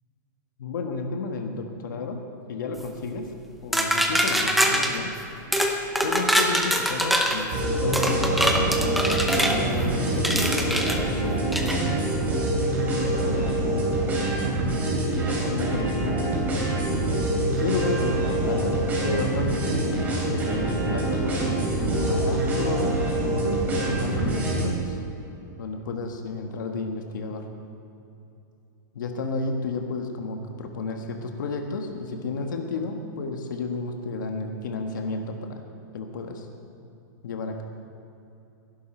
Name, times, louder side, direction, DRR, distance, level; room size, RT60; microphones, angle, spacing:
voice 1, 0.6-2.2 2.5-3.3 3.6-5.1 6.0-8.7 9.3-12.1 13.1-13.5 15.1-17.2 17.5-18.8 19.0-22.9 23.7-25.0 25.6-27.5 28.9-35.6 35.9-36.5 37.2-37.6, left 3 dB, 80° left, 4 dB, 1.4 m, -32 dB
sound 1, 3.7-4.9 5.5-5.7 6.0-7.4 7.9-9.6 10.2-11.0 11.5-11.8, equal, ahead, 0.8 m, -23 dB
sound 2, 7.5-24.7, right 1 dB, 15° right, 3.3 m, -25 dB
17.0 x 11.0 x 4.4 m, 2.8 s
supercardioid pair, 165°, 10 cm